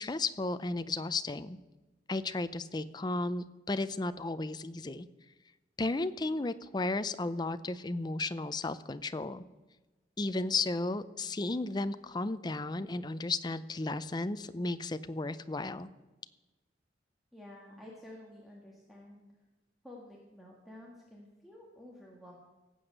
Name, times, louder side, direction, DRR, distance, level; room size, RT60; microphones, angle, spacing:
voice 1, 0.0-1.6 2.1-5.1 5.8-9.4 10.2-15.9, left 2 dB, 25° left, 12 dB, 0.5 m, -34 dB
voice 2, 17.3-19.2 19.8-22.3, left 1 dB, ahead, -3 dB, 1.8 m, -51 dB
18.0 x 7.9 x 6.6 m, 1.2 s
head